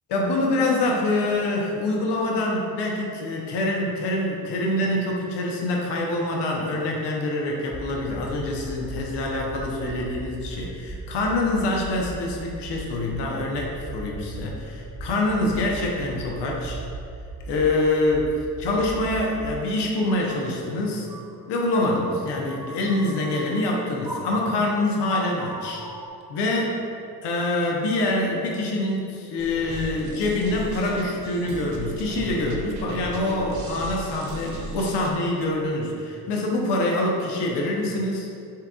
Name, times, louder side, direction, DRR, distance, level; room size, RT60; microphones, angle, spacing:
voice 1, 0.1-16.8 17.5-18.3 18.6-21.1 21.5-25.8 26.3-26.8 27.2-38.3, left 2 dB, 60° left, -1 dB, 0.9 m, -25 dB
sound 1, 7.7-19.6 20.0-26.1, right 2 dB, 10° right, 0.3 m, -39 dB
sound 2, 29.4-35.1, right 2 dB, 40° right, 0.7 m, -35 dB
5.6 x 3.6 x 2.3 m, 2.6 s
hypercardioid pair, 45°, 47 cm